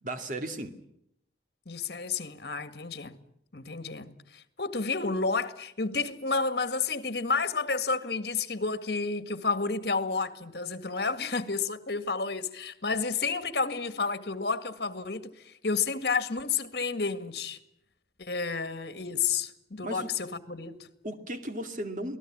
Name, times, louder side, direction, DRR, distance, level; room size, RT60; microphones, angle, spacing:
voice 1, 0.0-0.7 19.8-20.1 21.0-22.2, right 1 dB, 45° right, 2.4 m, -35 dB
voice 2, 1.7-3.1 3.5-17.6 18.2-20.9, left 4 dB, 60° left, 1.8 m, -31 dB
28.0 x 19.0 x 8.7 m
head